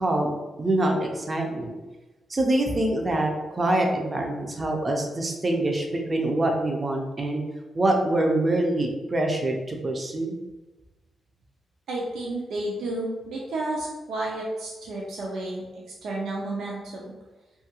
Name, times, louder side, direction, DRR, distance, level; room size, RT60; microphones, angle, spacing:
voice 1, 0.0-1.8 2.3-7.4 7.7-10.3, right 1 dB, 30° right, 1 dB, 0.4 m, -25 dB
voice 2, 11.9-17.1, right 2 dB, 80° right, -3 dB, 0.5 m, -31 dB
2.8 x 2.3 x 2.8 m, 1.1 s
cardioid pair, 95°, 0 cm